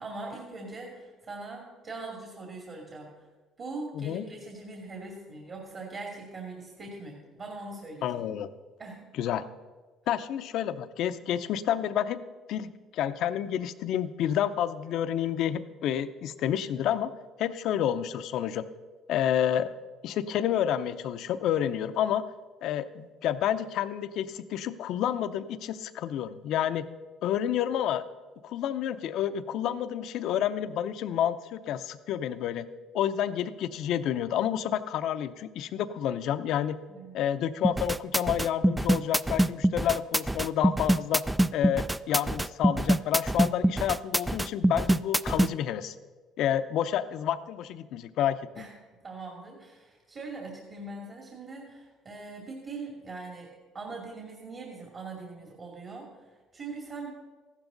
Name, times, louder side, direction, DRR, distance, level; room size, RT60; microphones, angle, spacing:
voice 1, 0.0-3.3 3.6-8.2 8.8-9.1 36.9-37.2 48.5-48.7 49.0-53.5 53.7-57.1, right 3 dB, 40° right, 0 dB, 2.4 m, -41 dB
voice 2, 8.0-8.5 9.2-9.5 10.1-12.2 12.5-17.1 17.4-18.6 19.1-19.7 20.0-22.3 22.6-26.9 27.2-28.0 28.4-32.7 32.9-36.8 37.1-41.2 41.5-45.9 46.4-48.4, left 10 dB, 70° left, 12 dB, 0.6 m, -29 dB
sound 1, 37.6-45.5, right 1 dB, 10° right, 0.3 m, -24 dB
14.5 x 12.0 x 3.9 m, 1.3 s
cardioid pair, 110°, 0 cm